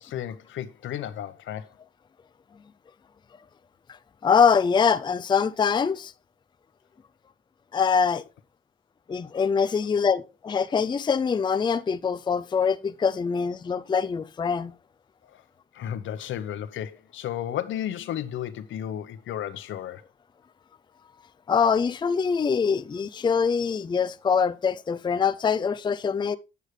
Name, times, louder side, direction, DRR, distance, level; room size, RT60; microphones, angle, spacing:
voice 1, 0.0-1.7 15.3-15.4 15.7-20.0, left 10 dB, 75° left, 0.9 m, -33 dB
voice 2, 4.2-6.1 7.7-8.2 9.1-14.7 21.5-26.4, left 6 dB, 25° left, 0.4 m, -24 dB
9.1 x 8.3 x 3.2 m
cardioid pair, 90°, 20 cm